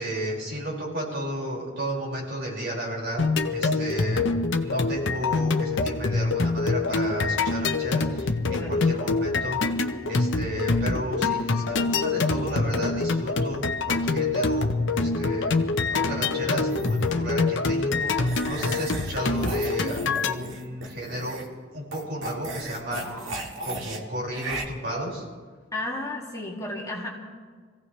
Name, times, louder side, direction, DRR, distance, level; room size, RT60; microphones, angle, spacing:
voice 1, 0.0-4.3 4.6-9.6 10.0-15.5 15.9-21.4 21.7-23.4 23.6-25.2, right 1 dB, 60° right, -4 dB, 5.4 m, -33 dB
sound 1, 3.2-20.3, left 3 dB, 65° left, 0.8 m, -25 dB
voice 2, 8.4-8.9 25.7-27.1, left 2 dB, 15° left, -3 dB, 2.3 m, -33 dB
sound 2, 16.7-17.1 18.2-21.5 21.9-24.0 24.3-24.6, right 2 dB, 80° right, 1.9 m, -36 dB
25.5 x 16.0 x 3.3 m, 1.5 s
head